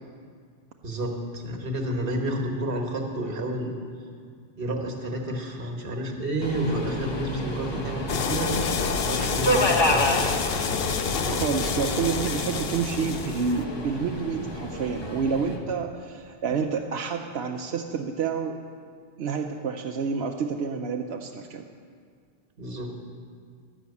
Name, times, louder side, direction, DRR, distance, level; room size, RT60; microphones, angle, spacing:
voice 1, 0.8-3.7 4.6-8.5 9.0-10.2 22.6-23.1, right 1 dB, 65° right, 2 dB, 1.6 m, -30 dB
Subway metro underground, 6.4-15.6, left 1 dB, 25° left, 1.1 m, -30 dB
sound 1, 8.1-13.6, left 6 dB, 70° left, 0.9 m, -28 dB
voice 2, 11.3-18.6 19.2-21.7, right 5 dB, 90° right, 3 dB, 0.9 m, -29 dB
12.0 x 6.2 x 8.2 m, 2.1 s
omnidirectional pair, 1.0 m